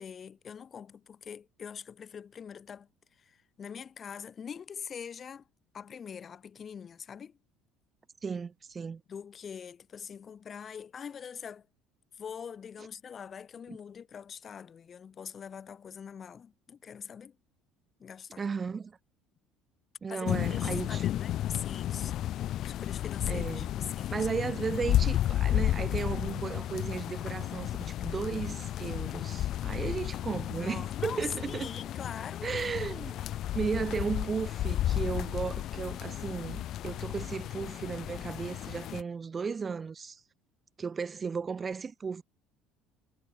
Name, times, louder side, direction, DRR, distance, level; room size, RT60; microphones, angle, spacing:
voice 1, 0.0-5.5 5.7-7.4 9.1-11.7 12.2-17.4 18.0-18.4 20.1-22.1 22.7-24.2 30.6-32.8, left 7 dB, 30° left, 3.7 m, -43 dB
voice 2, 8.2-9.0 13.7-13.8 18.4-19.0 20.0-21.0 23.3-23.7 24.1-31.7 32.4-33.1 33.5-40.2 40.8-42.2, right 5 dB, 20° right, 1.2 m, -35 dB
sound 1, 20.3-39.0, left 12 dB, 45° left, 0.7 m, -33 dB
cardioid pair, 150°, 0 cm